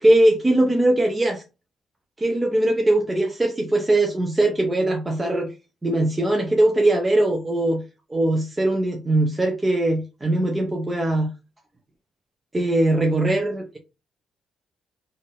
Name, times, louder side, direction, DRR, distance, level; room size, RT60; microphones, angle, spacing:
voice 1, 0.0-1.4 2.2-5.5 5.8-7.8 8.1-11.3 12.5-13.8, right 1 dB, 20° right, 0.7 m, -20 dB
3.8 x 2.6 x 3.7 m
cardioid pair, 90°, 0 cm